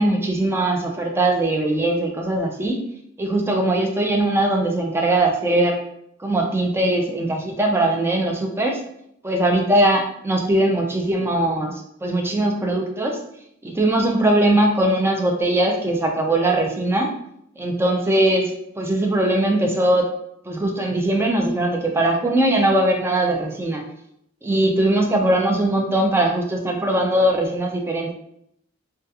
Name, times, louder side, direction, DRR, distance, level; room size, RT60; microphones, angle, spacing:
voice 1, 0.0-2.8 3.2-5.8 6.2-8.8 9.2-13.2 13.6-17.1 17.6-20.1 20.5-23.8 24.4-28.1, right 1 dB, 10° right, 2 dB, 0.3 m, -20 dB
2.3 x 2.3 x 2.7 m, 0.74 s
head